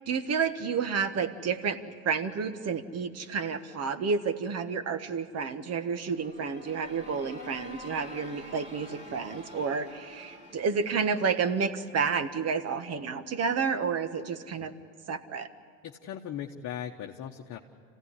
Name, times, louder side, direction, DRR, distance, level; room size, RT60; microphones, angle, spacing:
voice 1, 0.1-14.7 15.1-15.5, right 5 dB, 35° right, 11 dB, 1.5 m, -30 dB
sound 1, 5.8-12.6, left 1 dB, 15° right, 3.2 m, -48 dB
voice 2, 15.8-17.6, left 9 dB, 40° left, 1 dB, 1.2 m, -38 dB
26.5 x 16.0 x 9.8 m, 2.2 s
hypercardioid pair, 95°, 44 cm